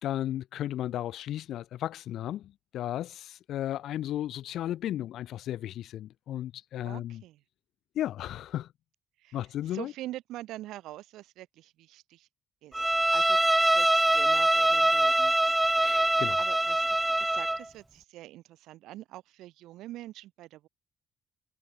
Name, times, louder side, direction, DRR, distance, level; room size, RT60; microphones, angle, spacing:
voice 1, 0.0-7.2 7.9-8.7 9.3-9.9 15.8-16.4, left 12 dB, 70° left, 0.7 m, -34 dB
voice 2, 6.8-7.4 9.2-9.4 9.7-12.3 12.6-12.8 13.1-15.8 16.4-20.7, right 15 dB, 75° right, 2.8 m, -44 dB
Bowed string instrument, 12.7-17.7, right 1 dB, 10° right, 0.4 m, -24 dB
hypercardioid pair, 55°, 0 cm